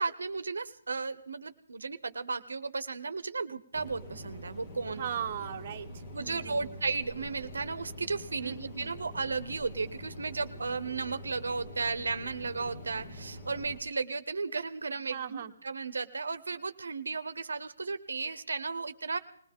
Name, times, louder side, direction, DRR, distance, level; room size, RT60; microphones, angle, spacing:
voice 1, 0.0-5.1 6.1-19.2, right 4 dB, 85° right, 13 dB, 0.7 m, -34 dB
sound 1, 3.7-13.8, left 1 dB, 30° left, 1.8 m, -45 dB
voice 2, 4.9-6.8 8.4-8.9 15.1-15.5, right 9 dB, 35° right, 4 dB, 0.9 m, -39 dB
20.5 x 17.5 x 3.7 m, 0.68 s
hypercardioid pair, 155°, 0 cm